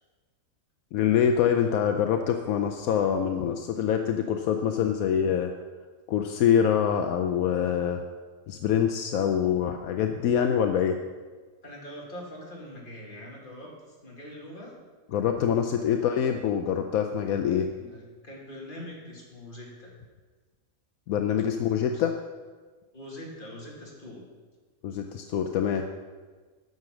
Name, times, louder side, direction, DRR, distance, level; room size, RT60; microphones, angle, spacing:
voice 1, 0.9-5.5 6.1-8.0 8.5-10.9 15.1-17.7 21.1-22.1 24.8-25.8, left 8 dB, 80° left, 5 dB, 1.0 m, -25 dB
voice 2, 11.6-14.7 15.8-16.0 17.5-19.9 21.7-22.0 22.9-24.2, equal, 35° left, -3 dB, 2.3 m, -43 dB
9.5 x 6.5 x 6.1 m, 1.4 s
omnidirectional pair, 1.5 m